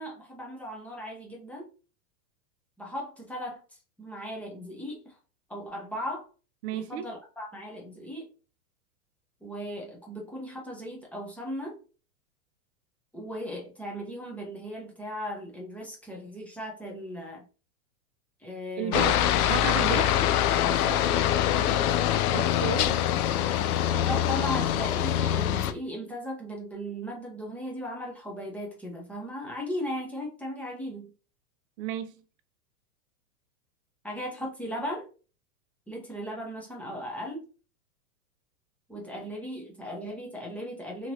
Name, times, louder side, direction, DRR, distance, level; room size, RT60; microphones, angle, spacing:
voice 1, 0.0-1.7 2.8-3.6 4.0-5.2 5.5-6.2 6.7-8.3 9.4-11.8 13.1-17.4 18.4-19.2 19.8-20.2 20.7-21.9 23.8-31.1 34.0-35.1 35.9-37.4 38.9-41.1, equal, 5° left, 0.6 m, -37 dB
voice 2, 6.6-7.1 18.8-19.2 19.5-20.1 22.3-23.0 31.8-32.1, right 9 dB, 45° right, 0.5 m, -32 dB
Aircraft, 18.9-25.7, left 11 dB, 65° left, 0.5 m, -24 dB
3.1 x 2.9 x 2.6 m
hypercardioid pair, 135°, 47 cm